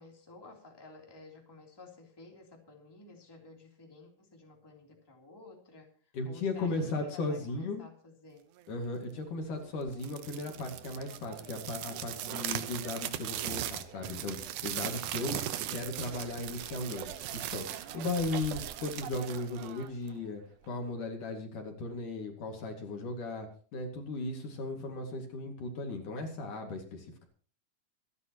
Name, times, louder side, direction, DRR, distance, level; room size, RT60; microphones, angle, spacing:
voice 1, 0.0-8.4, left 3 dB, 5° left, 0 dB, 2.9 m, -53 dB
voice 2, 6.1-7.8 8.7-15.4 15.7-17.7 17.9-20.4 20.7-23.5 23.7-27.3, left 2 dB, 60° left, 3 dB, 3.6 m, -36 dB
sound 1, 9.9-20.2, right 12 dB, 70° right, 2.1 m, -39 dB
26.5 x 11.0 x 3.0 m, 0.42 s
omnidirectional pair, 4.3 m